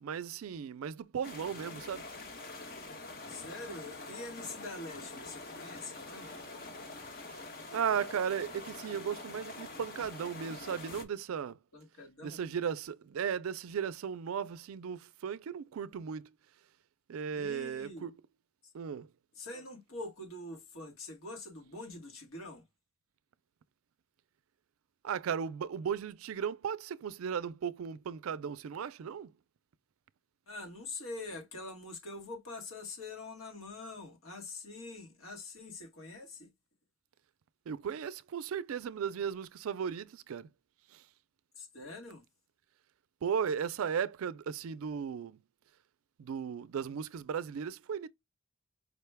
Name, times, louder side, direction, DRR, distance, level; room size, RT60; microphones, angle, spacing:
voice 1, 0.0-2.1 6.3-6.4 7.3-7.4 7.7-11.6 12.2-16.3 17.1-18.2 18.7-19.1 25.0-29.3 37.7-40.5 40.9-41.0 43.2-45.4 46.2-48.1, right 7 dB, 80° right, 0.4 m, -36 dB
sound 1, 1.2-11.0, left 2 dB, 45° left, 1.0 m, -45 dB
voice 2, 3.3-6.3 11.7-12.4 17.3-18.1 19.3-22.6 30.5-36.5 41.6-42.2, left 2 dB, 80° left, 1.5 m, -45 dB
5.0 x 2.1 x 3.3 m
head